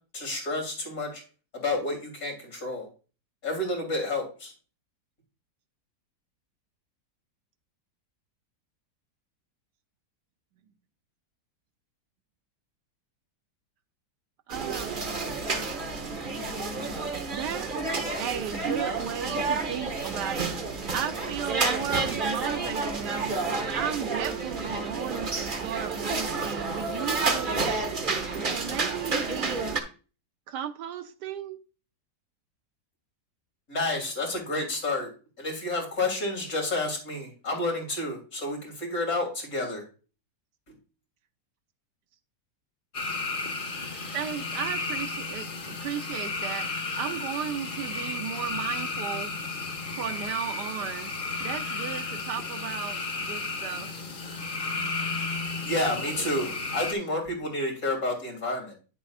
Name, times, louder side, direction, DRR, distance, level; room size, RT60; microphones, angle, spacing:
voice 1, 0.1-1.2 1.5-2.9 3.4-4.5 33.7-35.1 35.4-39.8 40.7-40.8 55.6-58.7, left 2 dB, 55° left, 3.3 m, -30 dB
sound 1, 14.5-29.8, right 3 dB, 35° right, 1.1 m, -30 dB
voice 2, 14.5-15.1 17.3-17.8 18.2-20.6 20.9-29.8 30.5-31.6 43.8-49.3 49.9-51.1 51.4-53.9, right 9 dB, 80° right, 1.3 m, -35 dB
sound 2, 42.9-56.9, left 3 dB, 35° left, 0.9 m, -33 dB
9.5 x 7.2 x 2.4 m
omnidirectional pair, 1.8 m